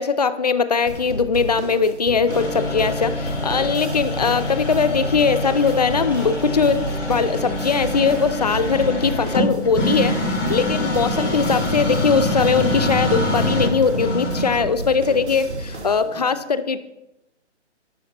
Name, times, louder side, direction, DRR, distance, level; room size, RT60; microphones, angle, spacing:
voice 1, 0.0-16.8, left 5 dB, 35° left, 13 dB, 0.5 m, -20 dB
sound 1, 0.9-16.2, right 1 dB, 70° right, 3.2 m, -34 dB
sound 2, 2.3-15.8, left 1 dB, 85° left, 4.6 m, -25 dB
13.0 x 12.0 x 3.0 m, 0.93 s
hypercardioid pair, 165°, 36 cm